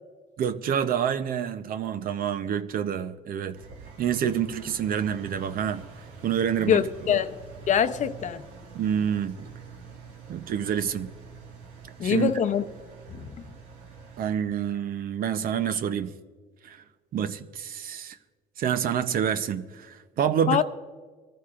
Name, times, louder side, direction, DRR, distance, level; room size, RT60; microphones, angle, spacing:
voice 1, 0.4-3.6 4.0-5.8 6.2-6.8 8.7-9.5 10.3-11.1 12.0-12.3 14.2-16.1 16.6-16.8 17.1-18.2 18.6-20.6, right 8 dB, 60° right, 0.7 m, -27 dB
Engine, 3.5-14.3, right 5 dB, 80° right, 2.3 m, -46 dB
voice 2, 6.6-7.4 7.7-8.4 12.0-12.6 13.1-13.3 20.5-20.6, left 8 dB, 45° left, 0.7 m, -24 dB
23.5 x 14.5 x 2.5 m
cardioid pair, 110°, 17 cm